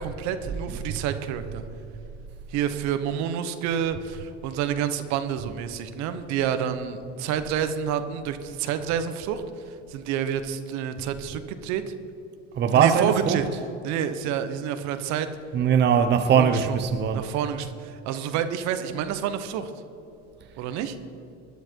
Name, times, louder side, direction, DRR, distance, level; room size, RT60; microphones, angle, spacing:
voice 1, 0.0-1.6 2.5-11.8 12.7-13.4 13.8-15.3 16.4-16.8 17.1-19.7 20.6-21.0, right 9 dB, 60° right, 1.3 m, -29 dB
voice 2, 12.6-13.4 15.5-17.2, right 7 dB, 35° right, 0.9 m, -20 dB
20.0 x 11.5 x 4.7 m
supercardioid pair, 110°, 31 cm